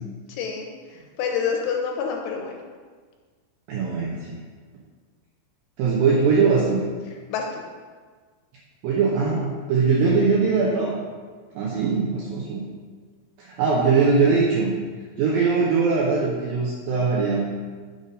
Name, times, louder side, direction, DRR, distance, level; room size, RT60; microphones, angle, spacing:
voice 1, 0.3-0.7 1.2-2.6 7.3-7.6, left 6 dB, 85° left, 1 dB, 2.8 m, -27 dB
voice 2, 3.7-4.4 5.8-6.8 8.8-11.0 11.6-12.7 13.4-14.7 15.2-17.5, right 4 dB, 85° right, -4 dB, 2.0 m, -21 dB
6.9 x 5.3 x 3.8 m, 1.5 s
omnidirectional pair, 5.1 m